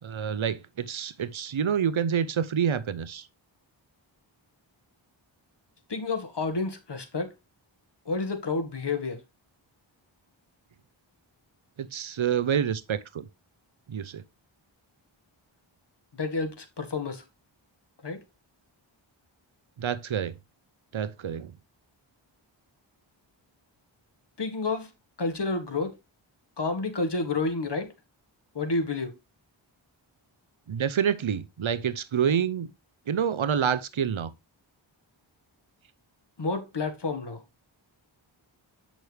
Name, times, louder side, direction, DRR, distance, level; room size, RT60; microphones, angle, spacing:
voice 1, 0.0-3.3 11.8-13.3 13.9-14.2 19.8-20.4 20.9-21.5 30.7-32.7 33.1-34.3, right 8 dB, 75° right, 0.8 m, -27 dB
voice 2, 5.9-7.3 8.1-9.2 16.1-17.2 18.0-18.2 24.4-24.9 25.2-26.0 26.6-27.9 28.6-29.1 36.4-37.4, left 3 dB, 55° left, 1.8 m, -30 dB
8.1 x 6.1 x 3.4 m
wide cardioid pair, 65°, 48 cm